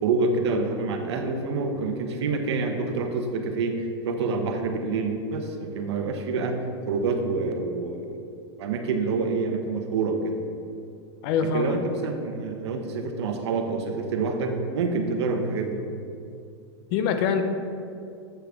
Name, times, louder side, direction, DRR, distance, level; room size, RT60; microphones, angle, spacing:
voice 1, 0.0-3.8 4.0-6.6 6.9-8.1 8.6-10.4 11.5-15.8, right 4 dB, 75° right, 5 dB, 0.9 m, -27 dB
voice 2, 11.2-11.8 16.9-17.4, left 6 dB, 50° left, 7 dB, 0.7 m, -24 dB
8.1 x 5.8 x 3.6 m, 2.5 s
supercardioid pair, 130°, 14 cm